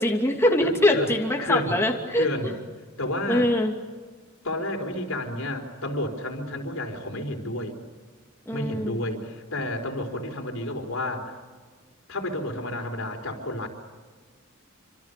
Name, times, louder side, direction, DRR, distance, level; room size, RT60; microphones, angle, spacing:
voice 1, 0.0-2.5 3.3-3.7 8.5-9.1, left 1 dB, 10° left, 0 dB, 2.7 m, -23 dB
voice 2, 0.6-1.1 1.4-1.8 2.2-2.5 3.0-3.5 4.4-7.8 8.5-11.3 12.1-13.7, left 1 dB, 75° left, 3 dB, 4.5 m, -30 dB
27.5 x 26.0 x 6.9 m, 1.5 s
head